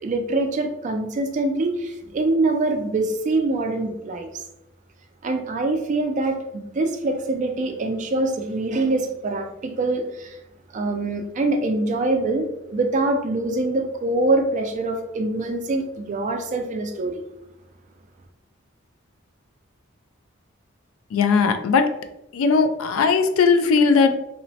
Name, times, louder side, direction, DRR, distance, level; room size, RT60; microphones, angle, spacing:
voice 1, 0.0-4.4 5.2-10.4 10.7-17.2, right 2 dB, 40° right, 5 dB, 0.3 m, -24 dB
voice 2, 21.1-21.9 22.3-24.1, left 5 dB, 80° left, 8 dB, 0.3 m, -18 dB
2.9 x 2.0 x 2.7 m, 0.86 s
head